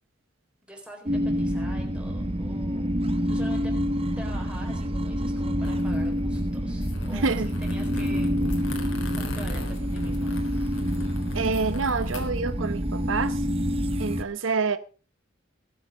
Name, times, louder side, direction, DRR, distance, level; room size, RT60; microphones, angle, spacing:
voice 1, 0.6-2.9 3.3-3.7 4.2-8.5 9.1-10.4, equal, 5° right, 4.2 m, -45 dB
sound 1, 1.1-14.2, equal, 30° right, 0.8 m, -27 dB
sound 2, 5.6-12.8, left 1 dB, 80° left, 3.7 m, -40 dB
voice 2, 7.1-7.5 11.3-13.4 14.0-14.8, right 4 dB, 75° right, 0.9 m, -27 dB
20.0 x 8.1 x 4.9 m
head